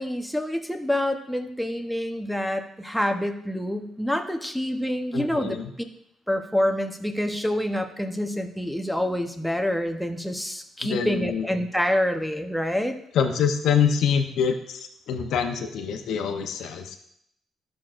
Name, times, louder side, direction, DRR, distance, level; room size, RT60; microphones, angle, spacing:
voice 1, 0.0-5.6 6.3-13.0, left 1 dB, ahead, 5 dB, 0.9 m, -27 dB
voice 2, 5.1-5.7 10.8-11.4 13.1-14.8 15.1-17.0, left 7 dB, 75° left, 4 dB, 0.7 m, -25 dB
12.5 x 6.2 x 2.5 m, 0.74 s
cardioid pair, 90°, 0 cm